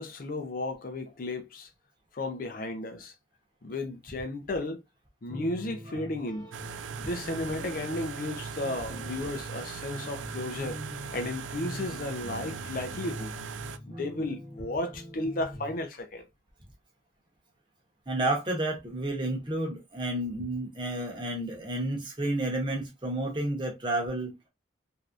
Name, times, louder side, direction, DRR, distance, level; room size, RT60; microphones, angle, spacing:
voice 1, 0.0-1.7 2.1-3.1 3.6-4.8 5.2-6.5 7.0-10.8 11.1-13.3 13.9-16.3, left 2 dB, 45° left, 0.5 m, -34 dB
sound 1, 5.3-15.8, left 1 dB, 20° left, 0.9 m, -43 dB
sound 2, 6.5-13.8, right 7 dB, 70° right, 0.3 m, -40 dB
voice 2, 18.1-24.5, right 1 dB, 25° right, 0.9 m, -31 dB
3.3 x 2.6 x 2.4 m
head